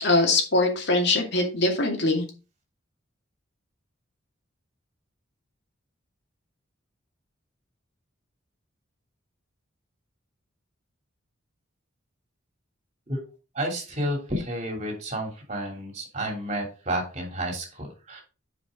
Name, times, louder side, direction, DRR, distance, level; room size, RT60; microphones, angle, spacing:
voice 1, 0.0-2.3, left 2 dB, 55° left, 2 dB, 2.4 m, -22 dB
voice 2, 13.5-18.2, right 1 dB, 35° right, 1 dB, 3.0 m, -31 dB
9.3 x 5.2 x 3.8 m, 0.32 s
head